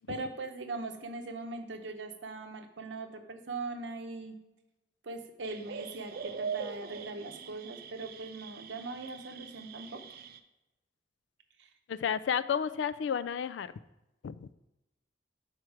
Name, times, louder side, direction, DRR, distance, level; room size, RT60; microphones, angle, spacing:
voice 1, 0.1-4.4 5.0-10.0 11.6-11.7, right 3 dB, 75° right, 6 dB, 0.8 m, -40 dB
sound 1, 5.4-10.4, right 6 dB, 55° right, 0.4 m, -42 dB
voice 2, 11.9-13.7 14.2-14.5, left 7 dB, 70° left, 16 dB, 0.3 m, -31 dB
6.4 x 4.5 x 4.7 m, 0.96 s
head